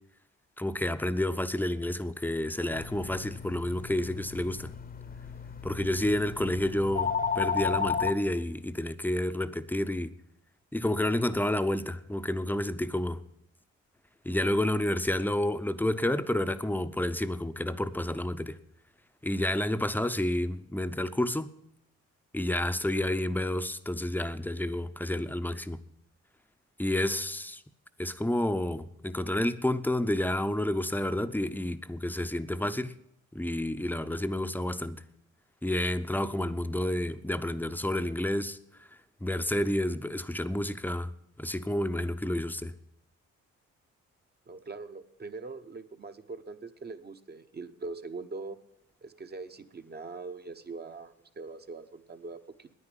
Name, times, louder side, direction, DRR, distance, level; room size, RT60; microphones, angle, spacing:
voice 1, 0.6-4.7 5.6-10.1 10.7-13.2 14.2-18.6 19.2-21.5 22.3-25.8 26.8-27.6 28.0-32.9 33.3-35.0 35.6-38.9 39.2-41.1 41.4-42.7, left 1 dB, 5° left, 0.7 m, -30 dB
sound 1, 2.7-8.1, left 6 dB, 30° left, 0.9 m, -33 dB
voice 2, 44.5-48.6 49.0-52.7, right 3 dB, 35° right, 1.0 m, -42 dB
9.7 x 9.7 x 9.9 m
cardioid pair, 90°, 30 cm